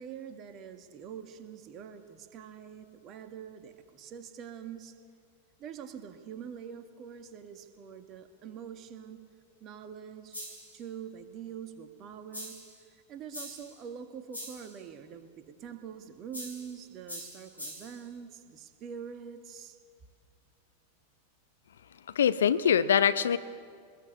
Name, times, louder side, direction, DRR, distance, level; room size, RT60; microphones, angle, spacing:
voice 1, 0.0-5.0 5.6-9.2 9.6-12.6 12.9-19.8, right 8 dB, 35° right, 2.0 m, -45 dB
sound 1, 10.3-10.8 12.3-12.8 13.3-13.8 14.3-14.7 16.3-16.7 17.1-18.0, equal, 90° left, 5.8 m, -43 dB
voice 2, 22.1-23.4, left 8 dB, 65° left, 0.6 m, -23 dB
24.5 x 20.5 x 8.5 m
figure-of-eight pair, 90°, 0 cm